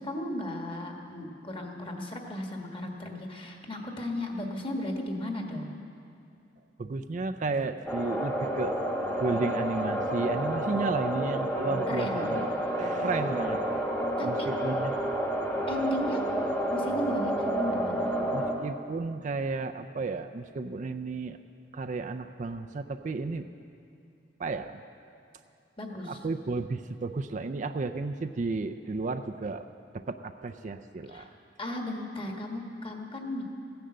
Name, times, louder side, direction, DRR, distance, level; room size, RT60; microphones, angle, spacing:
voice 1, 0.0-5.7 11.9-12.3 14.2-14.5 15.7-16.2 16.7-18.1 25.8-26.2 31.1-31.3 31.6-33.4, left 1 dB, 30° left, 2 dB, 1.5 m, -35 dB
voice 2, 6.8-12.5 12.8-13.9 14.2-15.7 18.3-21.4 21.7-23.5 24.4-24.8 26.1-29.7 29.9-31.3, right 3 dB, 40° right, 8 dB, 0.4 m, -33 dB
sound 1, 7.9-18.5, right 1 dB, 10° left, 1.1 m, -30 dB
16.0 x 10.0 x 7.6 m, 2.5 s
head